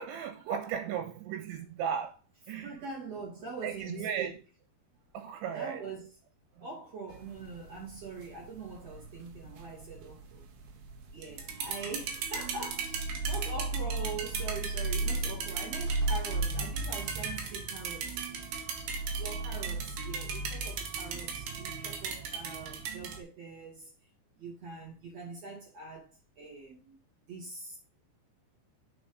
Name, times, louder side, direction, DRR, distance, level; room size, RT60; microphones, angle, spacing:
voice 1, 0.0-2.2 2.5-2.7 3.6-4.3 5.1-5.8 6.6-6.7, right 8 dB, 90° right, 3.6 m, -35 dB
voice 2, 2.6-4.4 5.5-6.1 6.6-10.4 11.1-18.2 19.1-23.9 24.4-26.1 26.4-27.8, right 3 dB, 40° right, 3.4 m, -43 dB
sound 1, 7.1-23.2, right 4 dB, 70° right, 3.1 m, -35 dB
8.7 x 5.3 x 4.0 m
omnidirectional pair, 5.3 m